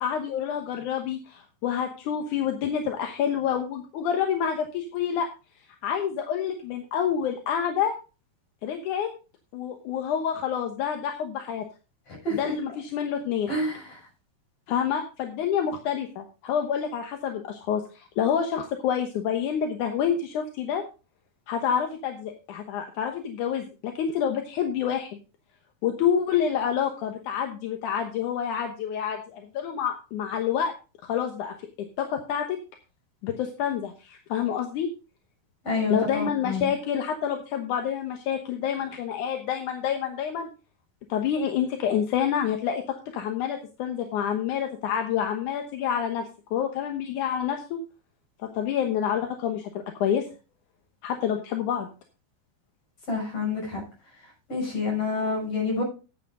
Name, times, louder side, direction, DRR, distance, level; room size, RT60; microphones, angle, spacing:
voice 1, 0.0-5.3 5.8-7.9 8.6-9.1 9.5-11.6 12.3-13.5 14.7-20.8 21.5-25.2 25.8-30.7 31.0-31.6 32.0-32.6 33.2-34.9 35.9-40.5 41.1-47.8 48.6-49.7 50.0-50.2 51.0-51.9, left 8 dB, 65° left, 4 dB, 2.2 m, -28 dB
voice 2, 13.5-13.8 35.6-36.7 53.1-53.8 54.5-55.8, left 3 dB, 35° left, -1 dB, 7.2 m, -28 dB
12.0 x 8.8 x 3.8 m, 0.33 s
omnidirectional pair, 4.4 m